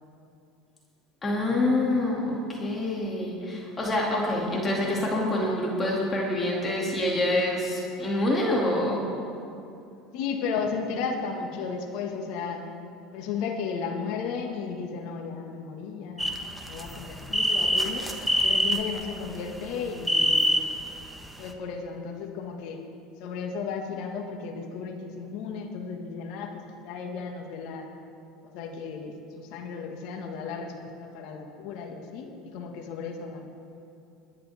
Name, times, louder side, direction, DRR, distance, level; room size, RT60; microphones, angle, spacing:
voice 1, 1.2-9.0, left 1 dB, 25° left, -3 dB, 2.5 m, -26 dB
voice 2, 10.1-12.6 13.1-16.4 16.6-18.1 18.4-20.6 21.4-22.8 23.2-27.9 28.4-33.4, left 5 dB, 65° left, 3 dB, 1.7 m, -34 dB
sound 1, 16.2-19.3 19.8-20.9 21.2-21.3, equal, 5° right, 1.2 m, -25 dB
21.5 x 9.9 x 3.6 m, 2.6 s
hypercardioid pair, 90°, 0 cm